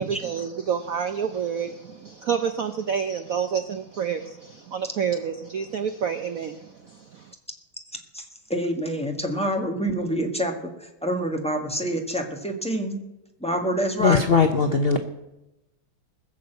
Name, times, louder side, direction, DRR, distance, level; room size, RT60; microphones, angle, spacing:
voice 1, 0.0-7.3, right 7 dB, 65° right, 9 dB, 0.9 m, -29 dB
voice 2, 8.5-13.0 13.4-14.2, right 1 dB, 5° left, 3 dB, 1.5 m, -27 dB
voice 3, 14.0-15.0, left 5 dB, 70° left, 7 dB, 0.5 m, -19 dB
20.5 x 6.9 x 8.0 m, 0.96 s
omnidirectional pair, 2.2 m